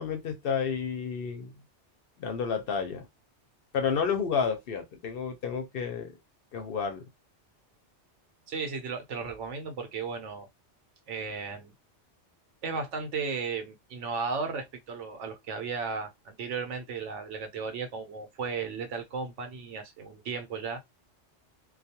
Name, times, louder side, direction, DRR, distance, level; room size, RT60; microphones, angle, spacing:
voice 1, 0.0-1.5 2.2-3.1 3.7-6.1 6.5-7.0, left 6 dB, 60° left, 0.7 m, -30 dB
voice 2, 8.5-10.5 11.1-11.7 12.6-20.8, right 5 dB, 85° right, 1.0 m, -35 dB
2.3 x 2.2 x 2.8 m
omnidirectional pair, 1.2 m